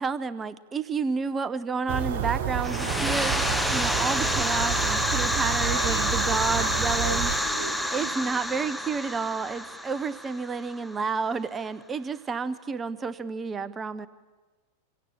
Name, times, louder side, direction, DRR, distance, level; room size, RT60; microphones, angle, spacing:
voice 1, 0.0-7.3 7.9-14.1, right 5 dB, 20° right, 17 dB, 0.8 m, -30 dB
sound 1, 1.9-7.4, right 8 dB, 55° right, 1.2 m, -30 dB
sound 2, 2.6-11.1, equal, ahead, 1.2 m, -28 dB
voice 2, 5.6-8.1, right 3 dB, 70° right, 8 dB, 2.5 m, -38 dB
27.5 x 23.5 x 9.0 m, 1.3 s
figure-of-eight pair, 90°, 0 cm